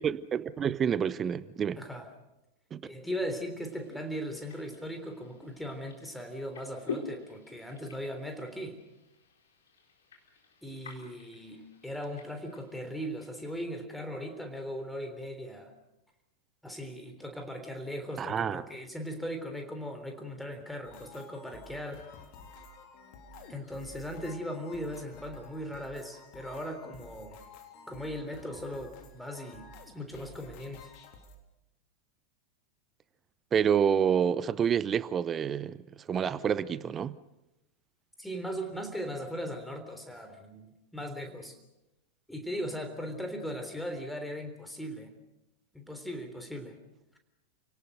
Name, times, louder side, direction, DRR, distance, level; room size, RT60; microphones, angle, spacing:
voice 1, 0.0-1.8 2.7-2.8 18.2-18.6 33.5-35.8 36.1-37.2, right 8 dB, 25° right, 0.7 m, -28 dB
voice 2, 1.8-2.1 2.8-8.8 10.6-15.7 16.6-22.1 23.5-27.4 27.9-29.7 29.9-30.9 38.2-41.6 42.3-45.1 45.7-46.7, equal, 5° left, 3.5 m, -38 dB
sound 1, 3.6-13.5, left 5 dB, 65° left, 4.1 m, -47 dB
sound 2, 20.8-31.4, left 2 dB, 45° left, 3.4 m, -51 dB
29.5 x 18.0 x 6.6 m
figure-of-eight pair, 90°, 0 cm